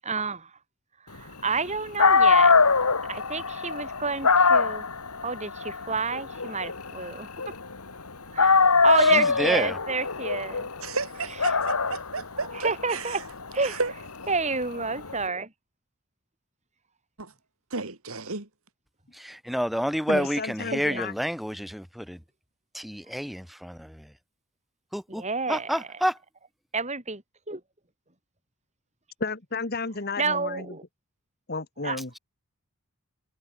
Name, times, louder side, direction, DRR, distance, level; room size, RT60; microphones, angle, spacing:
voice 1, 0.0-0.5 1.1-2.5 3.1-4.8 5.2-7.3 8.4-8.6 8.8-10.7 12.5-13.2 13.5-13.8 14.3-15.5 20.7-21.0 25.1-25.7 26.7-27.2 27.5-27.6 30.2-30.8 31.8-32.0, right 4 dB, 30° right, 7.9 m, -29 dB
Dog, 1.7-1.8 2.0-8.0 8.4-15.2, left 4 dB, 90° left, 2.5 m, -23 dB
voice 2, 9.0-9.8 19.1-22.2 22.7-24.1 24.9-25.2 25.5-26.2, equal, ahead, 7.2 m, -29 dB
voice 3, 10.8-13.2 13.6-13.9 17.2-17.3 17.7-18.5, right 3 dB, 70° right, 3.4 m, -33 dB
voice 4, 20.1-21.1 29.2-30.7 31.5-32.2, left 3 dB, 45° left, 1.8 m, -32 dB
head